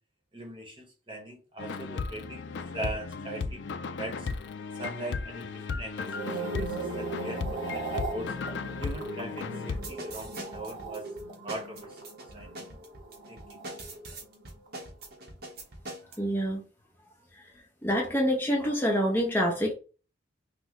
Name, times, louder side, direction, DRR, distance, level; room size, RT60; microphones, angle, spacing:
voice 1, 0.3-2.5 2.7-3.6 4.0-4.3 4.7-8.3 8.8-11.0 11.4-12.6 13.3-13.6, right 1 dB, 25° right, 2 dB, 1.1 m, -40 dB
sound 1, 1.6-9.8, left 4 dB, 60° left, 0.4 m, -36 dB
sound 2, 6.0-14.4 14.7-15.0, right 3 dB, 70° right, 1.2 m, -38 dB
sound 3, 9.7-16.2, right 2 dB, 50° right, 1.0 m, -43 dB
voice 2, 16.2-16.6 17.8-19.7, equal, 10° left, -1 dB, 0.8 m, -26 dB
5.9 x 2.3 x 3.1 m, 0.35 s
head